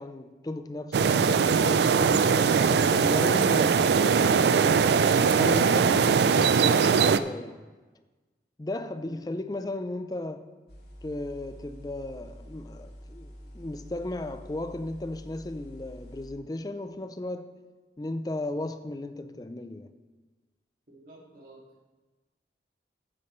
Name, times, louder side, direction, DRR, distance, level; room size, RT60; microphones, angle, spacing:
voice 1, 0.0-2.3 2.6-7.6 8.6-10.5 11.0-17.5 18.0-19.9, left 1 dB, 20° left, 0.4 m, -35 dB
sound 1, 0.9-7.2, right 6 dB, 65° right, 0.3 m, -21 dB
voice 2, 9.0-9.3 20.9-21.6, equal, 50° right, 2.3 m, -50 dB
sound 2, 10.7-16.3, equal, 65° left, 2.0 m, -47 dB
13.0 x 8.8 x 3.1 m
head